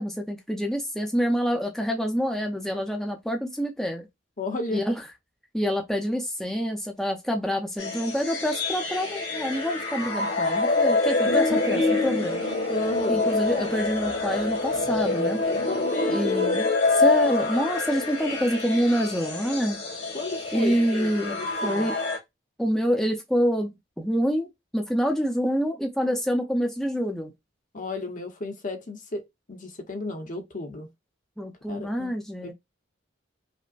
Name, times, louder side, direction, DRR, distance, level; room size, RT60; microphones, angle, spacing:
voice 1, 0.0-4.1 4.7-5.0 5.5-12.4 13.1-15.4 16.1-19.8 20.5-21.9 22.6-27.3 31.4-32.5, equal, ahead, 0.6 m, -27 dB
voice 2, 4.4-4.8 11.3-11.8 12.7-13.7 15.4-16.3 20.1-21.9 27.7-30.9 31.7-32.1 32.4-32.5, left 2 dB, 45° left, 0.9 m, -33 dB
sound 1, 7.8-22.2, left 3 dB, 90° left, 2.2 m, -26 dB
5.1 x 2.1 x 2.5 m
head